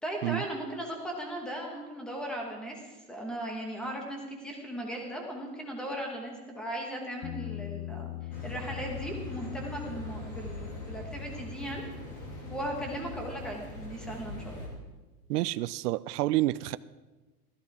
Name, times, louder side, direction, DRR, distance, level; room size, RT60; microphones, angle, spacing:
voice 1, 0.0-8.1 8.4-11.8 12.5-14.7, right 1 dB, ahead, 0 dB, 1.2 m, -37 dB
Bass guitar, 7.2-13.5, left 16 dB, 75° left, 0.9 m, -42 dB
sound 1, 8.3-14.7, equal, 35° left, 3.1 m, -42 dB
voice 2, 15.3-16.8, right 16 dB, 70° right, 16 dB, 0.6 m, -28 dB
14.5 x 14.0 x 4.8 m, 1.2 s
supercardioid pair, 175°, 48 cm